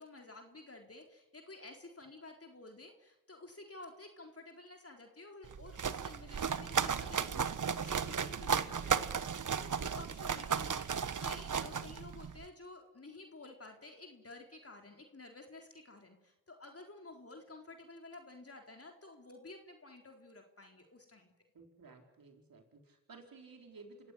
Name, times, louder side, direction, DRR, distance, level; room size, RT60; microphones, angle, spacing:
voice 1, 0.0-21.3, left 2 dB, 40° left, 3 dB, 4.0 m, -52 dB
sound 1, 5.4-12.4, right 6 dB, 60° right, 1.2 m, -35 dB
voice 2, 21.5-24.1, right 3 dB, 75° right, 3 dB, 4.6 m, -55 dB
26.5 x 15.5 x 9.9 m, 1.0 s
cardioid pair, 40°, 35 cm